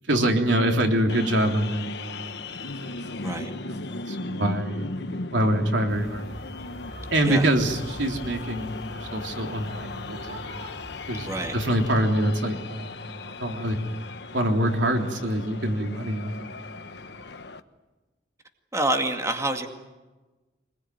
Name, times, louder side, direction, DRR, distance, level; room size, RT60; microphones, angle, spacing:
voice 1, 0.1-6.3 7.1-10.7 11.0-13.8 14.3-16.8, right 1 dB, 90° right, 3 dB, 3.4 m, -26 dB
sound 1, 1.1-17.6, left 3 dB, 65° left, 1.2 m, -38 dB
sound 2, 5.9-11.9, right 1 dB, 55° right, 4.4 m, -43 dB
voice 2, 18.7-19.7, right 1 dB, 15° right, 4 dB, 2.2 m, -27 dB
25.5 x 21.0 x 9.4 m, 1.2 s
head